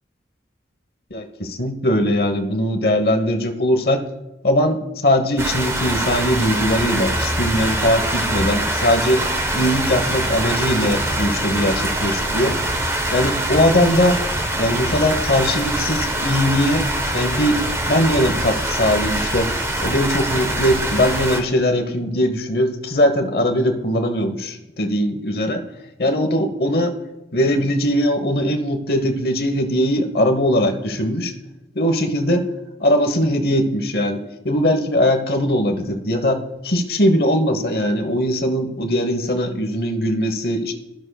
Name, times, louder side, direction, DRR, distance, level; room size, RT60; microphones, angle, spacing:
voice 1, 1.1-4.0 4.4-4.8 5.0-9.2 9.5-12.5 13.1-14.2 14.6-16.8 17.1-17.6 17.9-19.5 19.8-25.6 26.0-26.9 27.3-31.3 31.8-32.4 32.8-34.2 34.4-36.4 36.6-40.7, equal, 60° left, 6 dB, 1.0 m, -20 dB
sound 1, 5.4-21.4, right 1 dB, 15° right, 0.7 m, -23 dB
13.5 x 6.3 x 2.3 m, 1.0 s
head